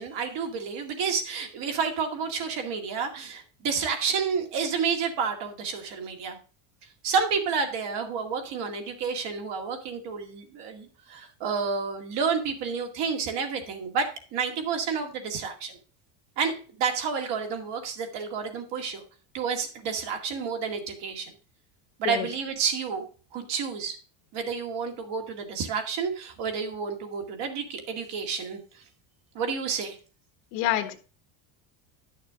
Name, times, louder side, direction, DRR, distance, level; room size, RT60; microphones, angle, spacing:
voice 1, 0.0-6.4 7.0-15.8 16.4-19.0 19.3-21.3 22.0-24.0 24.3-28.8 29.3-30.0, right 5 dB, 55° right, 4 dB, 2.2 m, -30 dB
voice 2, 30.5-30.9, left 13 dB, 75° left, 8 dB, 1.5 m, -27 dB
11.0 x 6.5 x 3.7 m, 0.37 s
cardioid pair, 155°, 50 cm